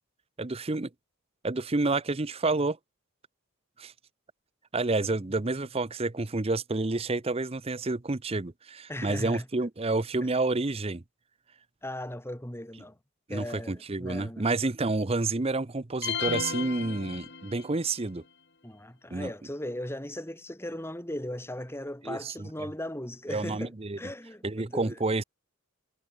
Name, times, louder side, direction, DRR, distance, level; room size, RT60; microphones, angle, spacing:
voice 1, 0.4-0.9 1.4-2.8 3.8-3.9 4.7-11.0 13.3-18.2 19.1-19.3 22.0-22.7 23.3-24.0 24.4-25.2, right 3 dB, 25° right, 0.7 m, -29 dB
voice 2, 8.9-9.5 10.2-10.3 11.8-13.0 13.3-14.5 18.6-25.0, left 1 dB, 10° left, 2.8 m, -38 dB
sound 1, 16.0-17.8, left 7 dB, 50° left, 2.4 m, -34 dB
head